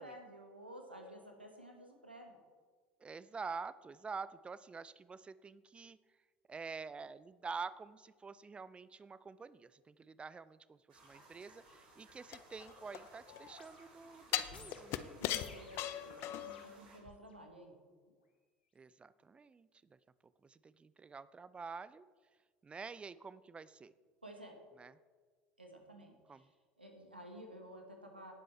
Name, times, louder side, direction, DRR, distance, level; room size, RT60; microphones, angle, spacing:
voice 1, 0.0-2.4 15.2-17.7 24.2-24.6 25.6-26.5 26.8-28.3, equal, 90° right, 3 dB, 1.6 m, -53 dB
voice 2, 3.0-6.0 6.5-15.0 18.8-20.0 20.4-22.0 22.6-23.9 24.8-24.9 26.3-26.5, right 5 dB, 20° right, 17 dB, 0.5 m, -48 dB
sound 1, 10.9-17.0, right 2 dB, 70° right, 3.2 m, -61 dB
sound 2, 12.3-13.5 14.3-16.7 17.1-17.2, left 13 dB, 50° left, 0.6 m, -39 dB
sound 3, 13.3-17.4 18.0-18.2, left 4 dB, 75° left, 1.5 m, -58 dB
18.0 x 7.6 x 3.3 m, 1.5 s
figure-of-eight pair, 70°, 5 cm